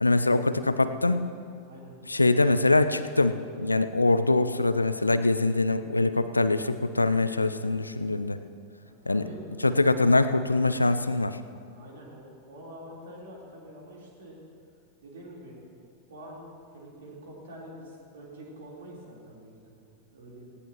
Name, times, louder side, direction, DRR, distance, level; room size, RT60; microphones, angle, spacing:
voice 1, 0.0-1.3 2.1-8.4 9.1-9.2 9.6-11.4, left 2 dB, 80° left, 11 dB, 0.5 m, -23 dB
voice 2, 1.6-2.0 8.8-9.5 11.7-14.4 15.0-15.6 16.1-16.4 16.7-19.9 20.1-20.6, right 1 dB, 60° right, -3 dB, 3.8 m, -46 dB
19.0 x 17.0 x 3.0 m, 2.3 s
figure-of-eight pair, 90°, 0 cm